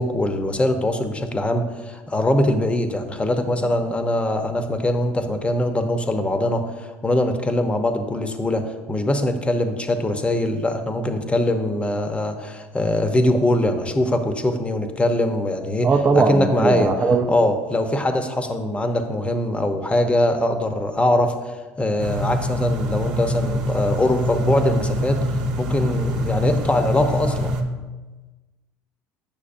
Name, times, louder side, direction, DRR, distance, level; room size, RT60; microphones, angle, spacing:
voice 1, 0.0-15.9 16.1-16.9 17.3-21.3 21.8-25.2 25.6-27.5, left 1 dB, 15° left, 7 dB, 0.9 m, -22 dB
voice 2, 15.8-17.2, right 4 dB, 30° right, 1 dB, 0.6 m, -19 dB
sound 1, 22.0-27.6, equal, 65° right, 1.0 m, -25 dB
8.6 x 6.2 x 2.6 m, 1.2 s
hypercardioid pair, 80°, 7 cm